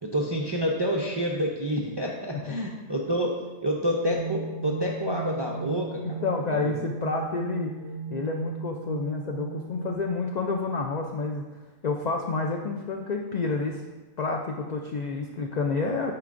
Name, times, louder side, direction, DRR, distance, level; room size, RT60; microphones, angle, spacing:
voice 1, 0.0-3.3 3.6-6.0 6.5-6.7, equal, 45° right, -1 dB, 0.3 m, -28 dB
sound 1, 4.0-9.9, right 3 dB, 85° left, 1.2 m, -36 dB
voice 2, 6.0-7.7 8.1-11.5 11.8-13.8 14.2-16.1, left 3 dB, 70° left, 2 dB, 0.4 m, -29 dB
9.4 x 4.5 x 2.5 m, 1.2 s
omnidirectional pair, 1.2 m